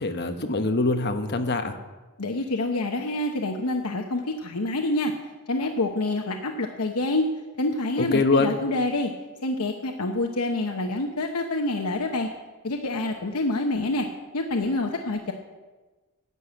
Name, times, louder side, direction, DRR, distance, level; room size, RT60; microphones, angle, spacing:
voice 1, 0.0-1.8 8.0-8.5, left 3 dB, 50° left, 6 dB, 1.1 m, -23 dB
voice 2, 2.2-5.1 5.5-7.3 7.6-9.1 9.4-12.3 12.6-14.1 14.3-15.3, left 2 dB, 85° left, 3 dB, 1.0 m, -27 dB
11.0 x 7.9 x 8.6 m, 1.2 s
head